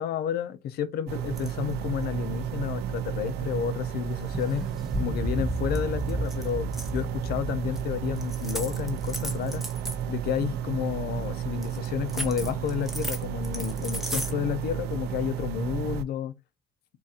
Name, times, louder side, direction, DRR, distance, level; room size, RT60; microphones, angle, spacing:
voice 1, 0.0-4.7 5.0-9.6 10.1-16.3, left 9 dB, 70° left, 0.6 m, -31 dB
sound 1, 1.1-16.0, right 9 dB, 75° right, 0.4 m, -32 dB
sound 2, 1.4-1.7 4.1-5.5 5.7-5.8 6.1-7.0 7.8-7.9 8.2-10.0 11.6-14.3, equal, ahead, 0.8 m, -36 dB
sound 3, 4.9-10.3, right 1 dB, 30° right, 1.2 m, -34 dB
4.0 x 2.5 x 4.1 m
cardioid pair, 110°, 17 cm